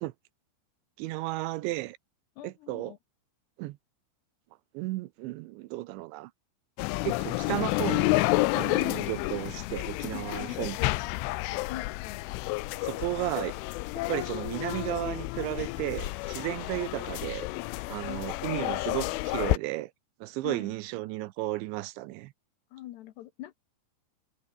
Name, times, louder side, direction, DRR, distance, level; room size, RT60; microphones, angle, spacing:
voice 1, 1.0-2.0 2.4-2.9 3.6-3.8 4.7-6.3 7.0-8.2 8.5-10.8 12.8-13.6 14.1-17.5 17.9-19.9 20.2-22.3, right 18 dB, 85° right, 3.0 m, -34 dB
voice 2, 2.4-3.0 11.7-12.2 18.0-18.9 20.4-20.8 22.7-23.5, left 14 dB, 70° left, 2.9 m, -43 dB
sound 1, 6.8-19.6, left 21 dB, 85° left, 3.2 m, -30 dB
omnidirectional pair, 5.4 m